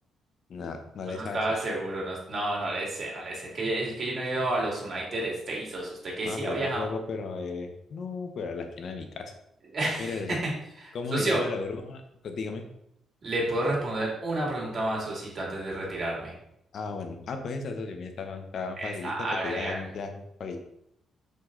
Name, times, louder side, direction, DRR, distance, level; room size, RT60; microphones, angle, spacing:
voice 1, 0.5-1.7 6.2-9.3 10.0-10.4 10.9-12.6 16.7-20.6, left 4 dB, 55° left, 6 dB, 1.0 m, -35 dB
voice 2, 1.1-6.9 9.7-10.5 10.8-11.4 13.2-16.3 18.8-19.9, right 2 dB, 40° right, -3 dB, 2.5 m, -30 dB
6.4 x 5.2 x 3.9 m, 0.78 s
cardioid pair, 130°, 0 cm